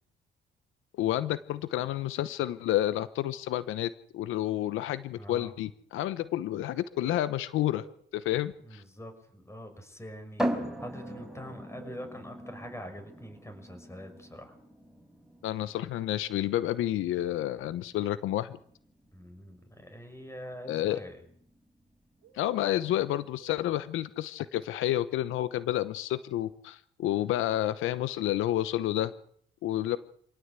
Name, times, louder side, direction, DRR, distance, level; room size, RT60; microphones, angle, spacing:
voice 1, 1.0-7.8 8.1-8.8 15.4-18.6 20.7-21.0 22.3-29.1 29.6-30.0, left 13 dB, 90° left, 15 dB, 0.9 m, -30 dB
voice 2, 5.1-5.5 8.6-14.6 19.1-21.3, equal, 15° left, 7 dB, 6.1 m, -44 dB
sound 1, 6.6-8.0 10.6-12.0 16.3-17.7 22.2-23.6, right 8 dB, 90° right, 2.2 m, -55 dB
sound 2, 10.4-23.9, equal, 5° right, 5.4 m, -41 dB
26.0 x 17.5 x 8.2 m, 0.65 s
cardioid pair, 90°, 20 cm